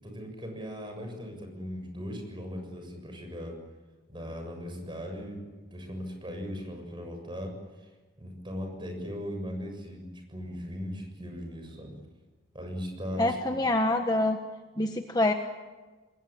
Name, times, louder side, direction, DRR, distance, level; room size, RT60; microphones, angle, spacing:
voice 1, 0.0-3.6 4.1-7.9 8.2-12.0 12.5-13.6, equal, 25° right, 4 dB, 6.9 m, -38 dB
voice 2, 13.2-14.4 14.8-15.3, left 2 dB, 20° left, 5 dB, 1.3 m, -25 dB
28.5 x 21.5 x 8.9 m, 1.3 s
head